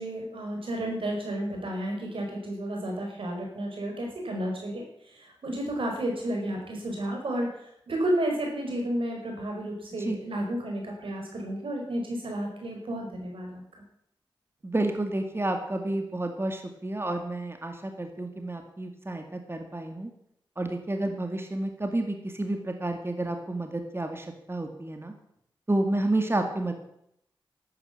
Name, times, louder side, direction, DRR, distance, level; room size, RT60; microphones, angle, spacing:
voice 1, 0.0-4.8 5.1-13.6, right 1 dB, 85° right, 0 dB, 5.1 m, -32 dB
voice 2, 14.6-20.1 20.6-25.1 25.7-26.7, right 2 dB, 25° right, 5 dB, 2.1 m, -30 dB
12.0 x 9.6 x 8.5 m, 0.75 s
cardioid pair, 50°, 9 cm